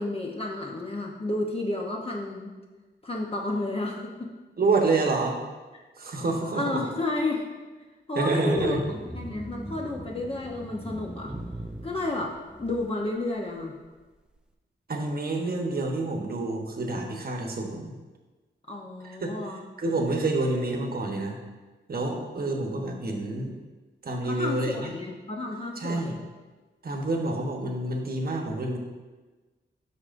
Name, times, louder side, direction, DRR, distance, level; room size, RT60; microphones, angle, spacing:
voice 1, 0.0-2.6 3.0-4.3 5.7-5.8 6.5-7.5 8.1-8.8 9.1-11.3 11.8-13.7 18.7-19.6 24.2-26.2, left 2 dB, 30° left, -1 dB, 0.9 m, -31 dB
voice 2, 4.6-5.4 6.0-6.8 8.1-8.8 14.9-17.9 19.0-19.3 19.8-21.4 21.9-23.5 24.0-24.9 25.8-26.2 26.8-28.8, right 2 dB, 50° right, 2 dB, 1.1 m, -28 dB
sound 1, 8.5-13.1, right 1 dB, 5° right, 0.5 m, -40 dB
12.0 x 4.9 x 2.6 m, 1.3 s
wide cardioid pair, 90°, 19 cm